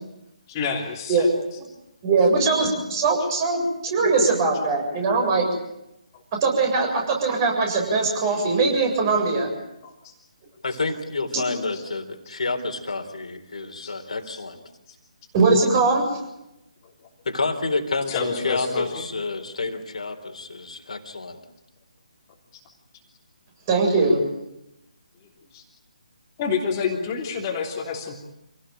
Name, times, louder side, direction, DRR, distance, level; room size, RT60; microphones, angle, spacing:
voice 1, 0.5-1.3 9.8-10.1 10.7-10.8 11.7-11.8 13.8-13.9 18.1-19.1 25.5-25.6 26.4-28.2, left 6 dB, 25° left, 0 dB, 3.2 m, -28 dB
voice 2, 1.1-1.6 2.0-5.5 6.4-9.5 15.3-16.0 23.7-24.2, right 3 dB, 30° right, 2 dB, 7.6 m, -21 dB
voice 3, 10.6-14.6 17.3-21.4, left 3 dB, 65° left, 5 dB, 3.5 m, -29 dB
27.0 x 18.0 x 9.2 m, 0.88 s
figure-of-eight pair, 145°, 4 cm